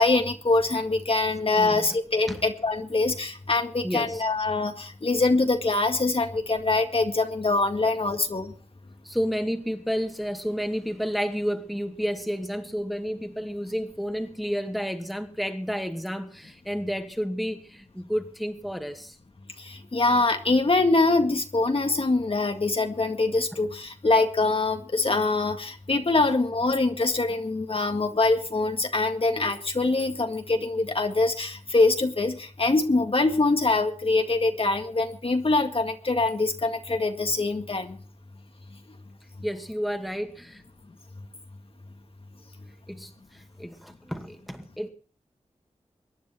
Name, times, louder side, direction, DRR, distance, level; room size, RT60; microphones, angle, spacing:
voice 1, 0.0-8.5 19.6-38.0, left 3 dB, 50° left, 5 dB, 1.9 m, -24 dB
voice 2, 1.6-1.9 2.3-2.4 3.8-4.2 9.0-19.2 23.5-23.7 39.4-40.6 42.9-44.9, equal, ahead, 5 dB, 2.2 m, -31 dB
23.0 x 10.0 x 4.5 m, 0.39 s
wide cardioid pair, 70°, 12 cm